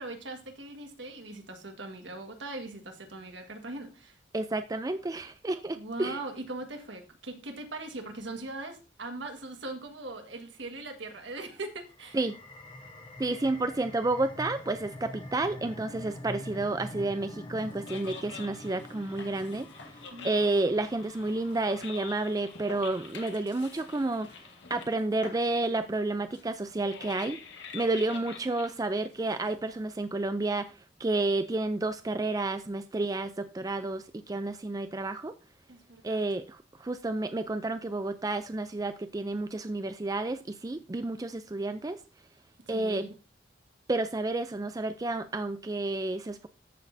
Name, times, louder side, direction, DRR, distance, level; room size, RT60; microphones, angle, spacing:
voice 1, 0.0-4.2 5.7-12.2 20.1-20.5 35.7-36.2 42.7-43.1, right 2 dB, 75° right, 1.6 m, -40 dB
voice 2, 4.3-6.2 12.1-12.4 13.2-19.7 20.2-27.4 27.7-30.7 31.0-35.3 36.0-42.0 42.7-43.1 43.9-46.5, right 2 dB, 20° right, 0.4 m, -30 dB
sound 1, 11.9-23.0, left 1 dB, 25° left, 1.0 m, -45 dB
sound 2, 17.6-29.8, left 5 dB, 70° left, 1.6 m, -47 dB
14.0 x 6.3 x 2.6 m
head